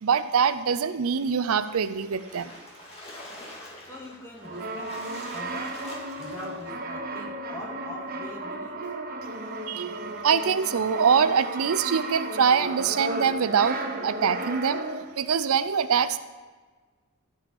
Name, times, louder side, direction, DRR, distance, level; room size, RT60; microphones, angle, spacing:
voice 1, 0.0-2.5 9.7-10.0 10.2-14.8 15.2-16.2, right 6 dB, 75° right, 13 dB, 0.5 m, -24 dB
Splash splatter, 1.9-6.8, left 1 dB, 25° left, 2.1 m, -45 dB
voice 2, 3.8-5.9 6.1-8.9, left 1 dB, 10° left, -4 dB, 2.1 m, -42 dB
Brass instrument, 4.4-15.2, right 2 dB, 40° right, 1.0 m, -34 dB
13.0 x 5.6 x 7.0 m, 1.4 s
head